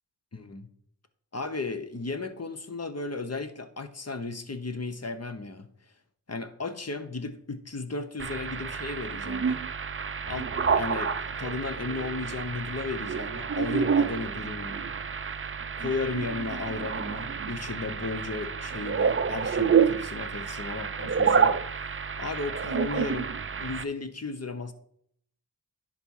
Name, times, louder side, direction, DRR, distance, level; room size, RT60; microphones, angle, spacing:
voice 1, 0.3-0.7 1.3-5.7 6.3-9.6 10.2-14.9 15.8-23.3 23.6-24.7, left 3 dB, 40° left, 9 dB, 1.0 m, -35 dB
sound 1, 8.2-23.8, right 6 dB, 30° right, 0.5 m, -29 dB
10.5 x 4.4 x 4.7 m, 0.67 s
cardioid pair, 45°, 41 cm